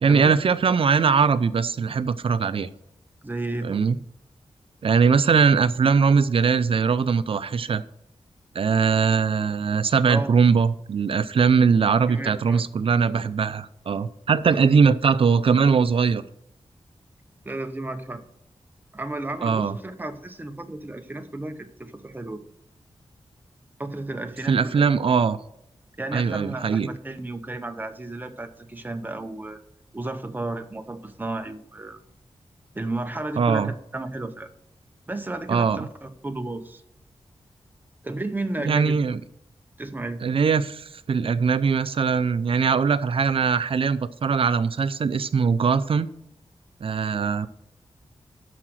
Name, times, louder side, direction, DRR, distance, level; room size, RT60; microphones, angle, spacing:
voice 1, 0.0-2.7 3.6-4.0 4.8-7.8 8.5-16.2 19.4-19.7 24.5-25.4 26.1-26.9 33.4-33.7 35.5-35.8 38.6-39.2 40.2-46.1 46.8-47.5, right 5 dB, 60° right, 14 dB, 0.5 m, -21 dB
voice 2, 3.2-3.9 10.1-10.3 12.1-12.7 14.5-14.8 17.4-18.2 18.9-22.4 23.8-24.8 26.0-29.6 29.9-32.0 32.7-34.5 35.1-36.8 38.0-39.0 39.8-40.2, right 2 dB, 15° right, 7 dB, 0.8 m, -33 dB
12.0 x 5.0 x 6.2 m, 0.77 s
wide cardioid pair, 155°, 11 cm